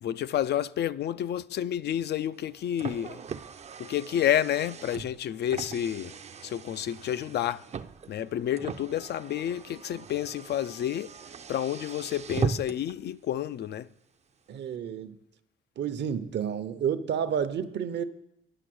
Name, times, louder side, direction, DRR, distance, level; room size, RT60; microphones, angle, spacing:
voice 1, 0.0-3.2 3.8-6.2 6.4-7.7 8.1-11.1 11.5-13.9, left 11 dB, 55° left, 0.4 m, -30 dB
Car, 2.3-13.0, right 6 dB, 35° right, 0.5 m, -39 dB
voice 2, 14.5-15.1 15.8-18.0, right 8 dB, 60° right, 0.8 m, -30 dB
9.9 x 6.0 x 7.7 m
cardioid pair, 90°, 20 cm